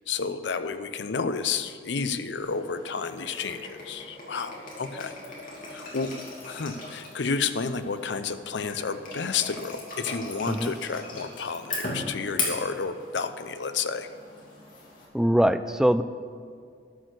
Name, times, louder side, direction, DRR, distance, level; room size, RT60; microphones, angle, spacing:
voice 1, 0.1-5.2 5.7-6.1 6.4-14.1, left 5 dB, 80° left, 11 dB, 0.6 m, -31 dB
sound 1, 2.4-15.1, left 3 dB, 50° left, 2.6 m, -38 dB
voice 2, 15.1-16.0, equal, 5° right, 11 dB, 0.3 m, -22 dB
12.5 x 6.3 x 8.0 m, 2.2 s
head